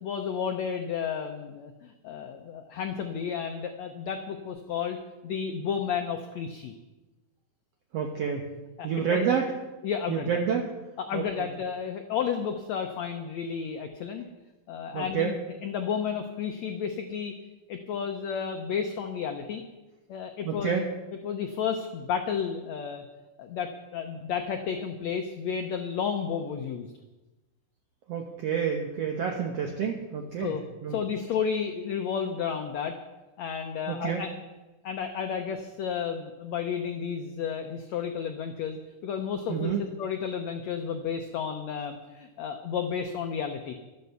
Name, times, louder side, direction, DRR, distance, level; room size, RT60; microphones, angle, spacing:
voice 1, 0.0-6.7 8.8-9.3 9.8-10.4 11.0-14.2 14.7-15.3 15.6-17.3 17.7-19.6 20.1-20.8 21.2-23.0 23.4-26.9 30.4-30.6 30.9-32.9 33.4-34.3 34.8-38.8 39.0-43.7, left 7 dB, 90° left, 5 dB, 1.5 m, -32 dB
voice 2, 7.9-8.4 8.8-9.5 10.1-10.7 11.1-11.5 14.9-15.4 20.4-20.8 28.1-30.6 30.8-31.0 33.9-34.2 39.5-39.8, right 7 dB, 75° right, 2 dB, 1.5 m, -28 dB
12.5 x 10.5 x 6.9 m, 1.1 s
omnidirectional pair, 4.3 m